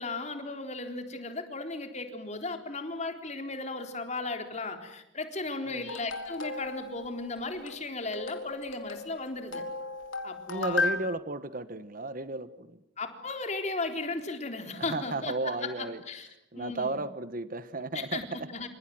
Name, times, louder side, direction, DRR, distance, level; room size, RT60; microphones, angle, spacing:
voice 1, 0.0-9.6 10.2-10.9 13.0-16.3 16.6-17.0 17.9-18.7, left 3 dB, 35° left, 5 dB, 3.9 m, -36 dB
sound 1, 5.9-11.0, left 3 dB, 90° left, 4.2 m, -36 dB
voice 2, 10.5-12.8 14.8-16.0 16.5-18.5, right 2 dB, 45° right, 13 dB, 1.3 m, -34 dB
28.5 x 26.5 x 7.8 m, 0.81 s
head